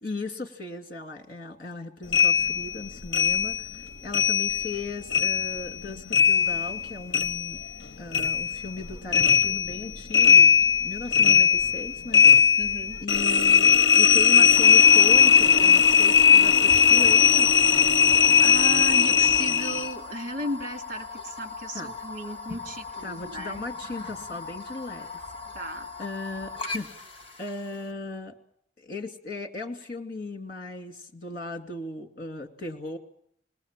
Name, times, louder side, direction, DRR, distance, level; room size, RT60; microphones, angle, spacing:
voice 1, 0.0-7.6 8.0-12.3 13.0-17.5 21.7-21.9 23.0-25.2 26.0-26.9 27.4-28.3 28.8-33.0, left 3 dB, 50° left, 5 dB, 2.7 m, -37 dB
sound 1, 2.1-4.8 5.1-7.9 8.1-19.9, left 6 dB, 70° left, 1.0 m, -19 dB
voice 2, 12.6-13.0 18.4-23.6 25.5-25.9, right 1 dB, 50° right, 6 dB, 2.7 m, -35 dB
sound 2, 14.5-27.9, left 4 dB, 30° left, 2.6 m, -39 dB
27.5 x 20.5 x 7.5 m, 0.71 s
head